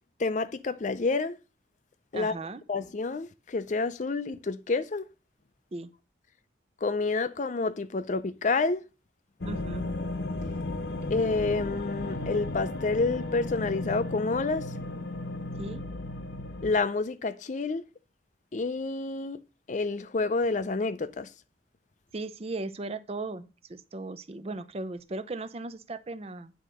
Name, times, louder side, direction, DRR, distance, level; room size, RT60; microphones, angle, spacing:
voice 1, 0.2-1.4 2.1-2.3 2.7-5.1 6.8-8.9 11.1-14.7 16.6-17.9 18.5-19.4 19.7-21.3, left 3 dB, 40° left, 0.4 m, -29 dB
voice 2, 2.1-2.6 5.7-5.9 9.4-9.9 15.6-15.8 22.1-26.5, right 2 dB, 30° right, 0.4 m, -37 dB
sound 1, 9.4-16.8, left 2 dB, 70° left, 0.9 m, -34 dB
9.2 x 3.8 x 6.3 m
head